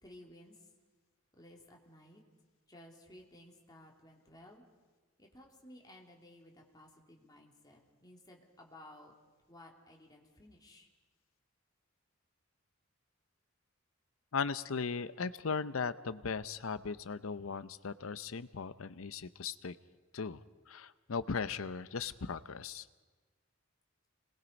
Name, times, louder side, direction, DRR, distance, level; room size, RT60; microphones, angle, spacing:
voice 1, 0.0-0.7 1.3-2.2 2.7-4.6 5.2-9.1 9.5-10.9, left 1 dB, 20° left, 0 dB, 2.8 m, -56 dB
voice 2, 14.3-19.8 20.1-20.4 20.7-22.9, left 5 dB, 80° left, 15 dB, 0.7 m, -37 dB
27.0 x 20.5 x 5.3 m, 1.3 s
head